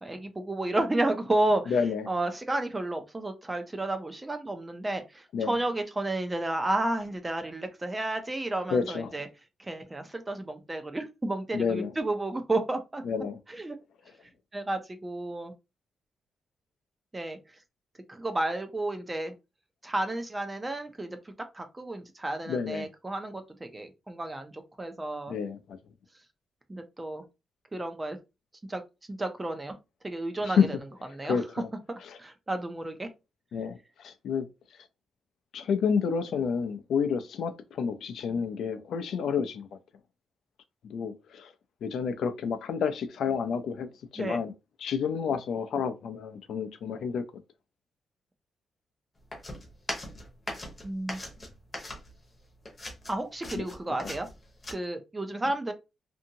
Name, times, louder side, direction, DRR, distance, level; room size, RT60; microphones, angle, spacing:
voice 1, 0.0-1.7 2.1-9.3 9.6-13.0 13.5-13.8 14.5-15.5 17.1-17.4 18.1-19.3 19.8-25.3 26.7-27.2 27.7-28.2 28.7-28.8 29.1-29.8 30.0-30.8 31.1-31.4 31.9-33.1 44.2-44.4 50.8-51.2 53.1-54.3 54.7-55.7, right 2 dB, 15° right, 0.4 m, -32 dB
voice 2, 1.7-2.1 5.3-5.5 8.7-9.2 11.5-11.9 13.1-13.4 22.5-22.9 25.3-25.6 30.6-30.7 31.2-31.7 33.5-34.5 35.5-39.7 40.8-41.5 41.8-43.9 44.1-44.5 44.8-47.2 53.6-53.7, left 6 dB, 75° left, 0.4 m, -29 dB
sound 1, 49.3-52.4 52.6-54.7, left 1 dB, 20° left, 0.7 m, -39 dB
2.6 x 2.6 x 2.7 m
wide cardioid pair, 170°, 0 cm